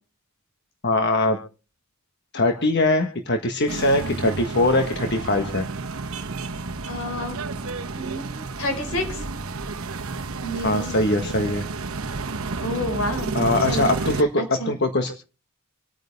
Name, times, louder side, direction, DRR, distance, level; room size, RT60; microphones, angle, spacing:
voice 1, 0.8-1.4 2.3-5.7 10.6-11.6 13.3-15.1, left 2 dB, 55° left, 5 dB, 1.5 m, -22 dB
sound 1, 3.7-14.2, right 3 dB, 85° right, 1.1 m, -31 dB
voice 2, 6.8-7.4 7.9-9.2 10.4-10.9 12.6-14.7, left 1 dB, 80° left, 4 dB, 4.9 m, -30 dB
26.5 x 9.2 x 3.5 m, 0.35 s
head